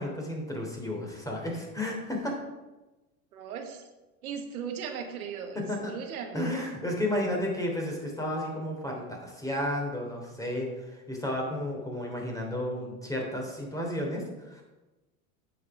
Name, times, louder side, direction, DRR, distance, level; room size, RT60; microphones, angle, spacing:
voice 1, 0.0-2.3 5.5-5.9 6.3-14.6, left 1 dB, 10° left, 0 dB, 3.3 m, -32 dB
voice 2, 3.3-3.8 4.2-6.4, right 7 dB, 85° right, 5 dB, 1.4 m, -37 dB
9.7 x 7.6 x 4.9 m, 1.1 s
hypercardioid pair, 95°, 42 cm